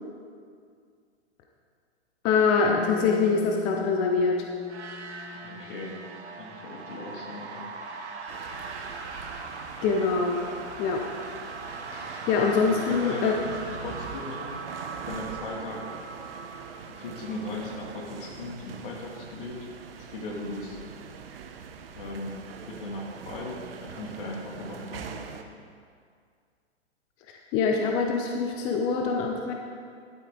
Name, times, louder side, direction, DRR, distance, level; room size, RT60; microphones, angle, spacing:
voice 1, 2.2-4.5 9.8-10.4 10.8-11.0 11.9-13.3 27.3-29.5, left 5 dB, 15° left, 1 dB, 0.3 m, -24 dB
Bass guitar, 2.7-7.1, left 8 dB, 35° left, 0.8 m, -41 dB
sound 1, 4.6-18.3, right 4 dB, 75° right, 1.3 m, -40 dB
voice 2, 5.4-6.0 6.4-7.6 12.3-13.4 13.8-14.6 15.1-15.8 17.0-19.7 20.1-20.8 21.9-22.4 22.7-25.1, left 2 dB, 55° left, -1 dB, 2.3 m, -37 dB
sound 2, 8.3-25.4, right 6 dB, 55° right, 0.9 m, -43 dB
12.0 x 8.2 x 3.7 m, 2.2 s
figure-of-eight pair, 115°, 34 cm